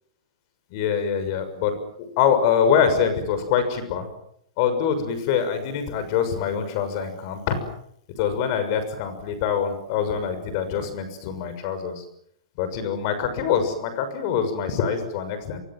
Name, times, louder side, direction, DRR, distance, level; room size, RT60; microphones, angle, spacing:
voice 1, 0.7-4.1 4.6-7.6 8.2-12.0 12.6-15.6, left 7 dB, 35° left, 10 dB, 6.5 m, -24 dB
30.0 x 24.5 x 7.7 m, 0.72 s
hypercardioid pair, 170°, 3 cm